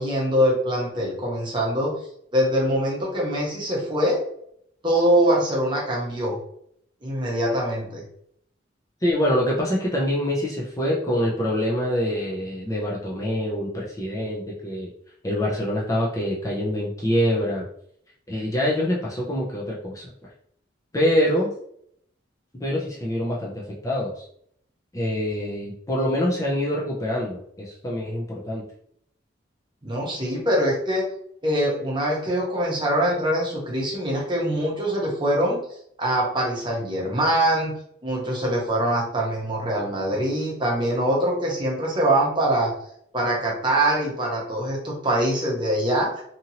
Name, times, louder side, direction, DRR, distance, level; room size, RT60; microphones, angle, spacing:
voice 1, 0.0-1.9 2.3-4.2 4.8-6.4 7.0-8.0 29.8-31.0 31.4-35.6 36.0-37.7 38.0-42.7 43.1-46.2, right 1 dB, 25° right, -3 dB, 0.9 m, -23 dB
voice 2, 9.0-14.9 15.2-17.6 18.3-20.1 20.9-21.5 22.6-24.2 24.9-28.6, equal, 15° left, -4 dB, 0.5 m, -25 dB
2.8 x 2.6 x 2.8 m, 0.68 s
head